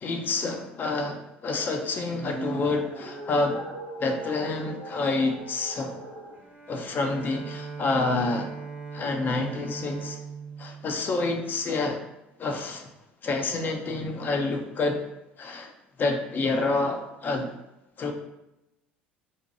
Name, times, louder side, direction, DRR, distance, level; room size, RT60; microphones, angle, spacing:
voice 1, 0.0-3.6 4.0-6.0 6.7-8.5 8.9-10.2 10.6-12.0 12.4-12.9 13.2-15.0 15.4-15.7 16.0-17.5 18.0-18.1, left 3 dB, 35° left, 4 dB, 0.4 m, -28 dB
sound 1, 2.0-6.4, right 2 dB, 85° right, 0.7 m, -38 dB
Bowed string instrument, 6.3-11.9, right 4 dB, 25° right, 0.6 m, -40 dB
2.6 x 2.1 x 2.7 m, 0.92 s
figure-of-eight pair, 60°, 6 cm